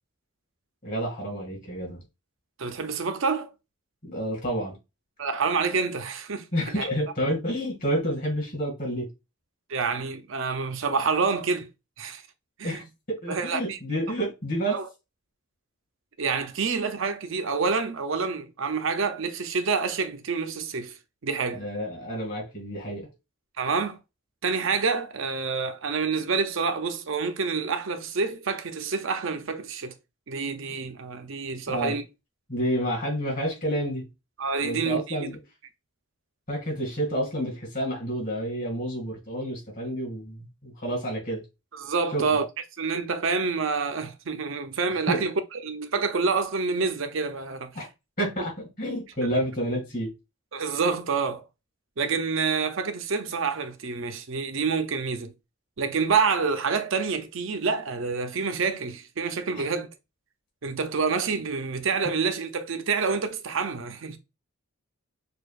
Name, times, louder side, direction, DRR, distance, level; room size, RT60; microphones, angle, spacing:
voice 1, 0.8-2.0 4.0-4.8 6.5-9.1 12.6-14.8 21.5-23.1 31.7-32.0 32.5-34.1 34.6-35.4 36.5-41.4 42.1-42.3 45.1-45.3 47.7-47.9 48.2-50.1 59.5-59.7, equal, 40° left, 2.1 m, -29 dB
voice 2, 2.6-3.5 5.2-6.5 6.8-6.9 9.7-11.7 12.0-12.2 12.6-12.8 13.3-13.8 14.7-14.9 16.2-21.0 21.2-21.6 23.6-24.0 24.4-29.9 30.3-32.0 34.4-35.3 41.7-42.5 42.8-47.7 50.5-51.4 52.0-55.3 55.8-59.9 60.6-64.2, right 5 dB, 60° right, 0.6 m, -27 dB
6.5 x 2.4 x 2.4 m
head